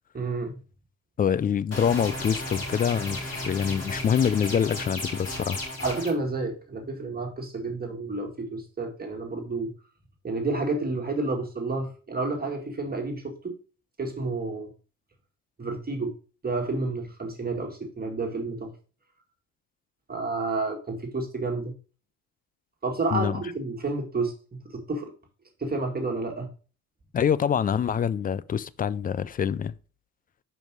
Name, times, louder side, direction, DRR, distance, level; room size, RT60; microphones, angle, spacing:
voice 1, 0.1-0.6 5.8-9.7 10.2-13.6 14.0-14.7 15.6-16.1 16.4-18.7 20.1-21.7 22.8-24.3 24.7-25.1 25.6-26.5, right 3 dB, 25° right, 1.9 m, -30 dB
voice 2, 1.2-5.6 23.1-23.3 27.1-29.7, left 8 dB, 25° left, 0.3 m, -25 dB
sound 1, 1.7-6.1, left 1 dB, 40° left, 4.0 m, -34 dB
5.4 x 5.3 x 4.6 m
supercardioid pair, 75°, 38 cm